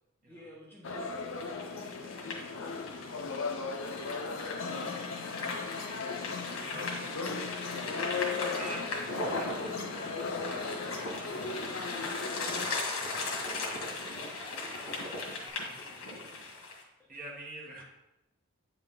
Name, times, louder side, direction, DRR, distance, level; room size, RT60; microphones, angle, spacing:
voice 1, 0.3-7.6 11.2-11.6 12.6-14.0 14.3-17.1, left 1 dB, 10° left, -4 dB, 1.1 m, -54 dB
sound 1, 0.8-12.7, left 4 dB, 60° left, 0.6 m, -37 dB
sound 2, 1.4-16.8, left 3 dB, 80° left, 1.7 m, -38 dB
voice 2, 6.7-7.3 8.5-10.1 10.4-12.3 17.1-17.8, right 1 dB, 40° right, -3 dB, 1.7 m, -46 dB
Alarm, 8.5-15.5, left 1 dB, 35° left, 1.3 m, -52 dB
8.7 x 4.5 x 3.8 m, 0.95 s
head